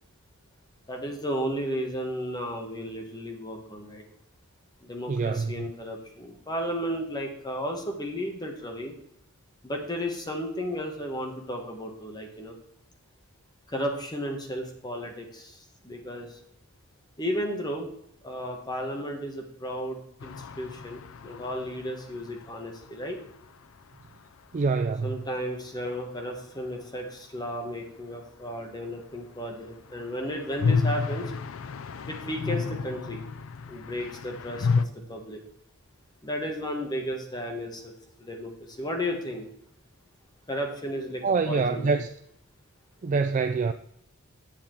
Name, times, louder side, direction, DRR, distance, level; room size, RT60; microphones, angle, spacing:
voice 1, 0.9-4.0 4.8-8.9 9.6-12.6 13.7-16.4 17.2-17.9 18.2-23.2 25.0-31.3 32.1-33.2 33.7-34.7 35.1-35.4 36.2-37.9 38.2-39.5 40.5-42.0, equal, 20° left, 1.1 m, -34 dB
voice 2, 5.1-5.7 24.5-25.1 41.2-42.1 43.0-43.7, right 4 dB, 35° right, 0.3 m, -25 dB
sound 1, 20.2-24.0 24.3-24.4 24.5-24.6 29.7-34.9, left 5 dB, 65° left, 0.4 m, -31 dB
8.3 x 7.5 x 4.5 m
head